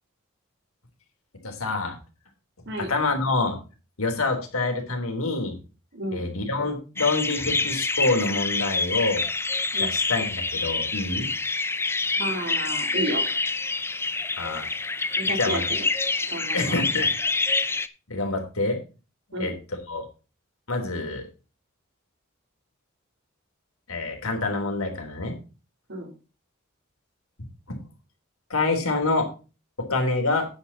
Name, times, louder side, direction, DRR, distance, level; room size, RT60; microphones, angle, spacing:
voice 1, 1.4-2.0 2.8-3.6 4.0-5.6 6.1-9.2 9.8-11.3 14.4-14.7 15.3-15.6 16.5-17.1 18.1-18.8 19.4-19.5 19.9-20.1 20.7-21.3 23.9-25.4 27.7-27.8 28.5-29.3 29.8-30.5, left 3 dB, 85° left, 3 dB, 3.5 m, -26 dB
voice 2, 5.9-6.3 9.7-9.9 12.2-13.2 15.2-15.8 16.3-16.8 19.3-19.5 25.9-26.1, right 1 dB, 55° right, 2 dB, 3.7 m, -31 dB
sound 1, 7.0-17.9, left 3 dB, 10° left, 0.5 m, -27 dB
9.7 x 8.6 x 4.1 m, 0.32 s
head